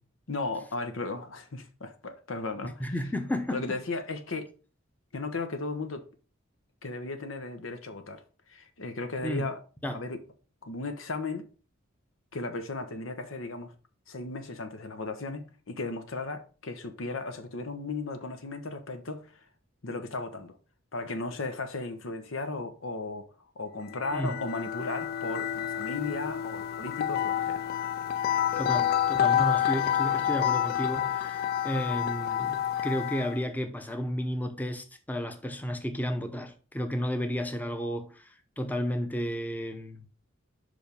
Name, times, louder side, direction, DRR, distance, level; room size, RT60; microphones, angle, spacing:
voice 1, 0.3-2.9 3.5-4.5 5.1-6.0 6.8-8.2 8.5-9.6 9.9-10.2 10.6-11.5 12.3-13.7 14.1-19.5 19.8-20.6 20.9-23.3 23.5-27.6, left 3 dB, 85° left, 1.0 m, -35 dB
voice 2, 2.8-3.8 9.2-9.5 9.8-10.0 24.1-24.4 28.6-40.2, equal, 10° left, 0.7 m, -32 dB
sound 1, 23.9-33.4, left 10 dB, 50° left, 0.3 m, -28 dB
5.5 x 5.1 x 5.1 m
head